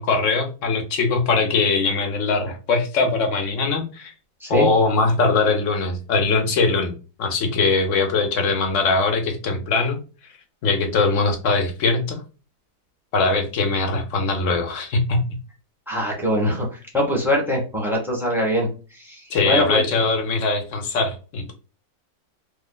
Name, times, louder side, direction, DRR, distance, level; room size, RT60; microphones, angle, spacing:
voice 1, 0.0-4.1 4.5-6.9 7.2-10.0 10.6-12.2 13.1-15.2 19.3-21.5, left 3 dB, 60° left, 5 dB, 0.9 m, -21 dB
voice 2, 15.9-19.8, equal, ahead, -1 dB, 0.8 m, -23 dB
3.0 x 2.1 x 3.7 m, 0.34 s
omnidirectional pair, 1.7 m